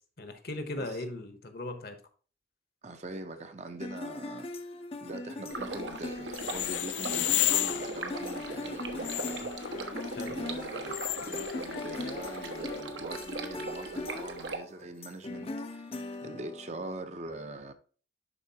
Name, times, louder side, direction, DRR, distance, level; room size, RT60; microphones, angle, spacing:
voice 1, 0.2-2.0 10.1-10.4, left 2 dB, 55° left, 1.0 m, -38 dB
voice 2, 2.8-4.5 5.0-9.5 10.2-15.9 16.2-17.7, right 2 dB, 40° right, 0.6 m, -43 dB
sound 1, 3.8-17.0, left 2 dB, 30° left, 0.5 m, -40 dB
Stream, 5.5-14.6, right 3 dB, 75° right, 1.0 m, -40 dB
sound 2, 6.3-12.8, left 13 dB, 85° left, 0.4 m, -34 dB
11.0 x 4.3 x 2.9 m
head